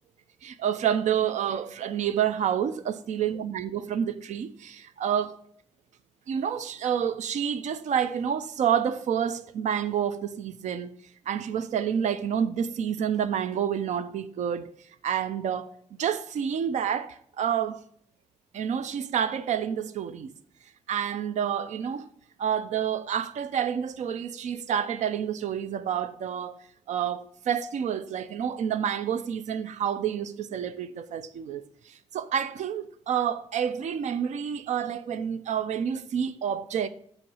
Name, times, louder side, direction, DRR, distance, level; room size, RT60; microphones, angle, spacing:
voice 1, 0.4-5.4 6.3-11.0 11.3-14.7 15.0-17.8 18.5-20.3 20.9-22.1 22.4-26.6 26.9-36.9, right 8 dB, 75° right, 0.5 m, -29 dB
7.7 x 3.1 x 6.1 m
cardioid pair, 85°, 12 cm